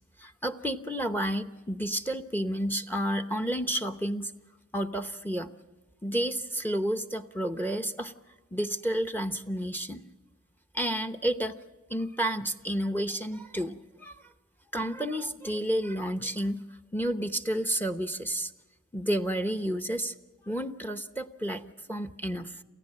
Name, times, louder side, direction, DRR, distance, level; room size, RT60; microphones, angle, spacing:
voice 1, 0.2-4.3 4.7-5.5 6.0-8.1 8.5-10.0 10.7-11.6 11.9-14.3 14.7-16.6 16.9-18.5 18.9-20.1 20.4-22.6, right 1 dB, 5° left, 9 dB, 0.9 m, -31 dB
28.5 x 15.5 x 7.6 m, 1.2 s
wide cardioid pair, 95°, 31 cm